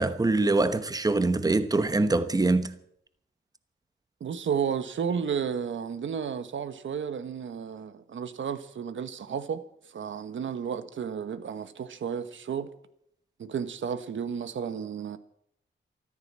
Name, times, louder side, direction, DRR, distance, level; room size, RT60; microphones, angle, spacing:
voice 1, 0.0-2.7, right 2 dB, 20° right, 1.1 m, -24 dB
voice 2, 4.2-9.6 9.9-12.7 13.4-15.2, right 7 dB, 75° right, 1.3 m, -32 dB
14.0 x 14.0 x 7.5 m
wide cardioid pair, 125°, 20 cm